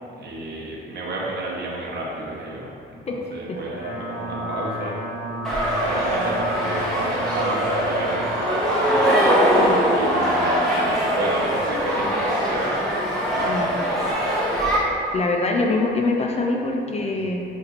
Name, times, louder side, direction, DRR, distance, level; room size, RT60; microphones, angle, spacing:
voice 1, 0.2-5.0 5.6-9.6 9.9-14.4, right 2 dB, 55° right, -4 dB, 0.8 m, -32 dB
sound 1, 3.5-8.4, equal, 85° left, 0.7 m, -32 dB
sound 2, 5.4-14.8, equal, ahead, 1.0 m, -22 dB
voice 2, 15.1-17.4, left 2 dB, 35° left, 1 dB, 0.4 m, -24 dB
5.5 x 2.5 x 2.8 m, 2.6 s
cardioid pair, 90°, 20 cm